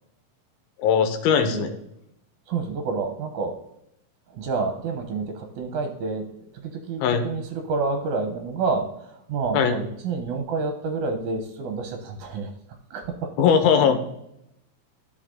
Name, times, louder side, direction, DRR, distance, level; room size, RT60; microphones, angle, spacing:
voice 1, 0.8-1.8 7.0-7.2 9.5-9.8 13.4-14.1, left 7 dB, 85° left, 8 dB, 2.8 m, -20 dB
voice 2, 2.5-3.6 4.3-12.5 12.9-13.3 13.8-13.9, right 4 dB, 70° right, 5 dB, 2.1 m, -29 dB
13.5 x 5.0 x 3.8 m, 0.79 s
omnidirectional pair, 4.3 m